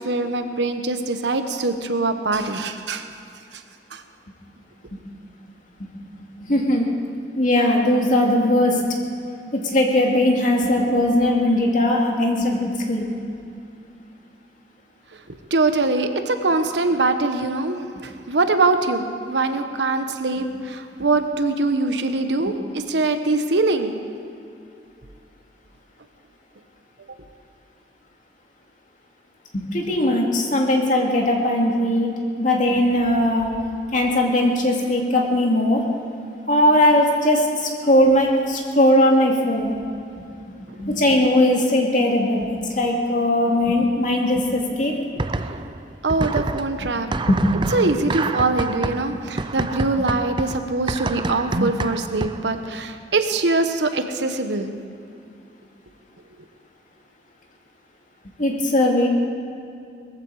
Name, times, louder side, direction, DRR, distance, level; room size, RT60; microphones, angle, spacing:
voice 1, 0.0-3.0 3.9-4.0 15.5-17.8 18.0-24.0 46.0-47.1 47.7-54.7, right 3 dB, 85° right, 8 dB, 1.1 m, -23 dB
voice 2, 6.5-6.9 7.3-8.8 9.5-13.0 29.5-32.1 32.4-33.5 33.9-35.8 36.5-39.7 40.2-40.3 40.8-45.0 47.2-47.4 58.4-59.1, left 1 dB, 45° left, 0 dB, 2.4 m, -19 dB
sound 1, 45.2-45.8 46.1-52.6, right 3 dB, 25° right, 0.5 m, -28 dB
19.5 x 15.0 x 4.8 m, 2.5 s
head